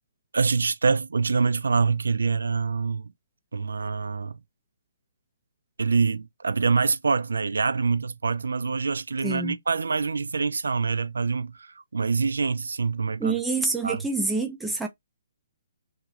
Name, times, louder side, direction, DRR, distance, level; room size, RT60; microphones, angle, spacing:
voice 1, 0.3-3.1 3.5-4.4 5.8-13.4 13.8-14.1, right 4 dB, 75° right, 0.4 m, -25 dB
voice 2, 9.2-9.6 13.2-14.9, right 3 dB, 5° right, 0.5 m, -27 dB
2.9 x 2.3 x 2.8 m
figure-of-eight pair, 140°, 0 cm